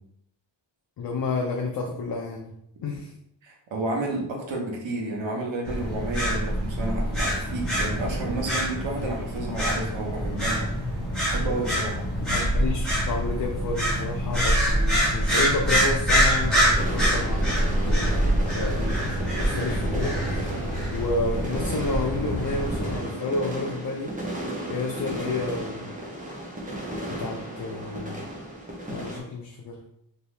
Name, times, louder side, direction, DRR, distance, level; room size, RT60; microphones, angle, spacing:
voice 1, 1.0-2.5 2.8-3.1 12.3-17.5 17.8-20.5 20.9-24.1 24.7-25.9 27.1-28.2 28.9-29.8, left 3 dB, 55° left, 0 dB, 0.5 m, -30 dB
voice 2, 3.4-10.6 11.2-12.1, right 2 dB, 85° right, 0 dB, 0.9 m, -31 dB
sound 1, 5.6-23.0, equal, ahead, 1.1 m, -25 dB
sound 2, 16.7-29.2, right 1 dB, 20° right, 0.6 m, -34 dB
2.7 x 2.7 x 3.1 m, 0.76 s
wide cardioid pair, 120°, 45 cm